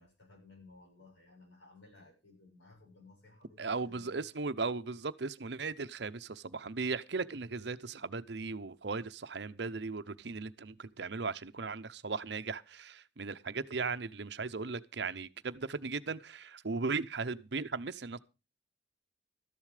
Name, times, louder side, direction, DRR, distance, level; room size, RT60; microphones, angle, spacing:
voice 1, 0.0-4.2, left 3 dB, 75° left, 7.1 m, -58 dB
voice 2, 3.6-18.2, right 4 dB, 65° right, 0.7 m, -37 dB
13.5 x 11.0 x 4.9 m
head